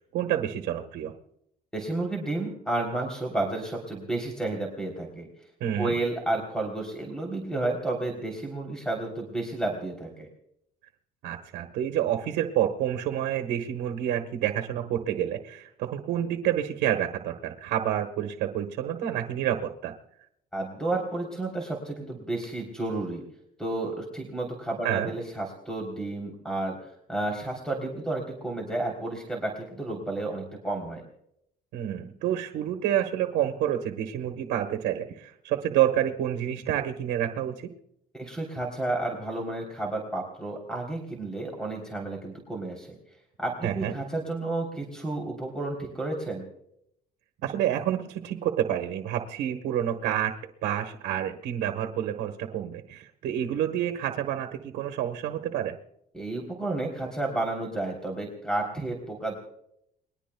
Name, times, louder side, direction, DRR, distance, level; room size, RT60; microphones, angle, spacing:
voice 1, 0.1-1.1 5.6-5.9 11.2-19.9 24.8-25.1 31.7-37.7 43.6-43.9 47.4-55.8, right 11 dB, 85° right, 4 dB, 1.3 m, -28 dB
voice 2, 1.7-5.3 5.8-10.3 20.5-23.2 23.6-31.0 38.1-43.0 43.4-46.5 56.1-59.3, right 2 dB, 5° left, 1 dB, 3.4 m, -31 dB
29.5 x 21.5 x 2.3 m, 0.76 s
cardioid pair, 110°, 17 cm